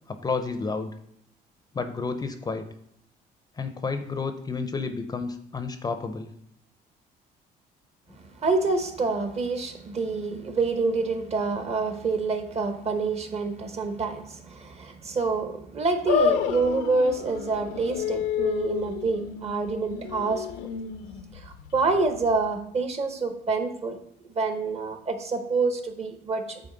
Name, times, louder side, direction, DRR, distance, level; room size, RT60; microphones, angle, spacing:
voice 1, 0.1-0.9 1.7-2.7 3.6-6.3, left 4 dB, 25° left, 9 dB, 0.5 m, -31 dB
voice 2, 8.2-20.5 21.3-24.0 24.3-26.6, right 4 dB, 40° right, 7 dB, 0.9 m, -27 dB
sound 1, 16.1-22.5, left 7 dB, 90° left, 0.5 m, -30 dB
8.7 x 4.0 x 3.8 m, 0.72 s
cardioid pair, 110°, 17 cm